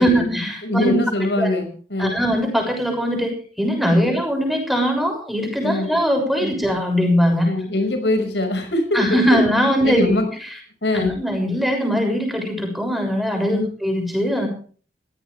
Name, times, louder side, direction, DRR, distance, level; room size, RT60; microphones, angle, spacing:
voice 1, 0.0-0.9 1.4-1.5 2.0-3.3 3.6-7.5 8.9-10.2 10.9-14.5, equal, ahead, 3 dB, 6.8 m, -20 dB
voice 2, 0.6-2.2 3.9-4.1 5.6-5.9 6.4-6.5 7.4-9.0 9.8-10.3 10.8-11.1 13.5-13.7, left 1 dB, 80° left, 7 dB, 5.9 m, -22 dB
23.0 x 17.0 x 3.5 m, 0.43 s
head